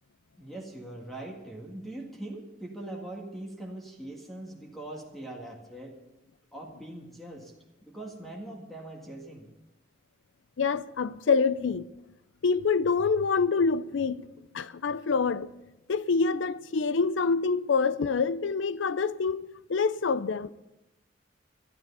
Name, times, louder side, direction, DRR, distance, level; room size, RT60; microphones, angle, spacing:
voice 1, 0.4-6.0 6.5-7.5 7.8-9.5, right 1 dB, ahead, 1.9 m, -41 dB
voice 2, 10.6-11.9 12.4-14.3 14.5-15.5 15.9-19.4 19.7-20.5, left 5 dB, 80° left, 0.5 m, -26 dB
12.5 x 12.5 x 5.5 m
head